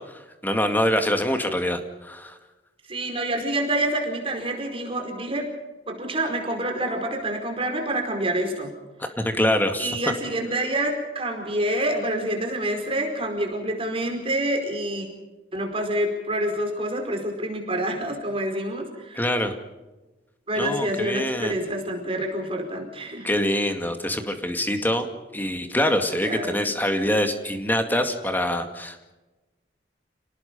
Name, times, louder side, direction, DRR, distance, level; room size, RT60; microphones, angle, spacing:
voice 1, 0.1-2.4 9.0-10.0 19.1-19.5 20.6-21.6 23.2-29.1, left 1 dB, 10° left, 6 dB, 2.2 m, -25 dB
voice 2, 2.9-5.5 5.9-8.7 9.8-15.1 15.5-19.2 20.5-23.3 26.2-26.6, right 1 dB, 30° right, 3 dB, 4.9 m, -27 dB
30.0 x 18.5 x 5.5 m, 1.1 s
head